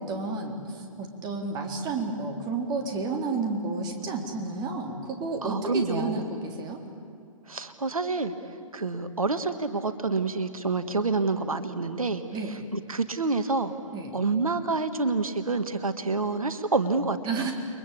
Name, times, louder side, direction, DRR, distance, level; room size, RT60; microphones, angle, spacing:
voice 1, 0.0-6.8 12.3-12.6 13.9-14.2 17.3-17.5, right 3 dB, 25° right, 3 dB, 3.8 m, -31 dB
voice 2, 5.4-6.2 7.5-8.3 8.7-13.7 14.1-17.5, right 3 dB, 85° right, 10 dB, 1.6 m, -28 dB
30.0 x 23.0 x 8.6 m, 2.5 s
figure-of-eight pair, 130°, 18 cm